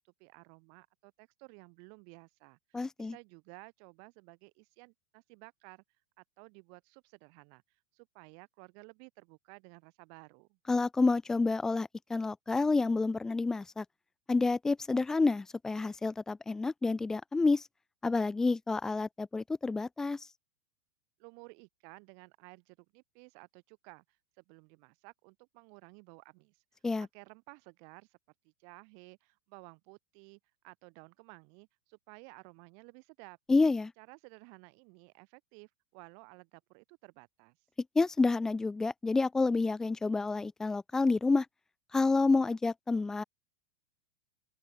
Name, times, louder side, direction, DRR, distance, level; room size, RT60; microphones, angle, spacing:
voice 1, 0.0-5.8 6.2-10.6 21.2-24.0 24.4-26.6 27.0-28.2 28.4-33.4 34.0-37.6, right 40 dB or more, 55° right, 5.1 m, -55 dB
voice 2, 2.7-3.1 10.7-13.8 14.3-17.6 18.0-20.3 26.8-27.1 33.5-33.9 38.0-41.5 41.9-43.2, left 3 dB, 10° left, 0.5 m, -29 dB
open air
hypercardioid pair, 125°, 6 cm